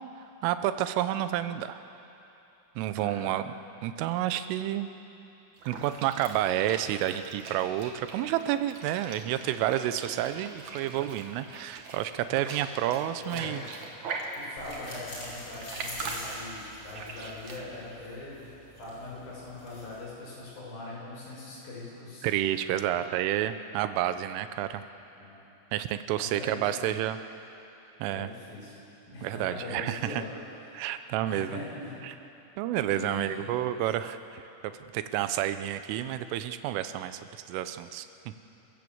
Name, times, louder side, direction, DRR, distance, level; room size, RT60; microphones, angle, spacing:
voice 1, 0.4-1.8 2.8-3.5 3.8-4.9 5.7-13.6 22.2-24.8 25.7-27.2 28.0-28.3 29.2-30.2 30.7-31.6 32.0-32.1 32.6-38.1, right 12 dB, 90° right, 11 dB, 3.4 m, -30 dB
voice 2, 3.0-3.3 13.3-13.8 14.3-18.4 18.8-22.3 25.2-25.4 26.2-27.0 28.1-28.7 29.1-30.3 30.6-30.8 31.3-31.9 32.9-33.4, left 2 dB, 50° left, -5 dB, 8.1 m, -41 dB
sound 1, 5.6-17.6, right 4 dB, 55° right, 2.2 m, -42 dB
sound 2, 14.6-20.1, left 1 dB, 20° left, 6.1 m, -45 dB
28.5 x 15.5 x 7.9 m, 2.9 s
omnidirectional pair, 5.6 m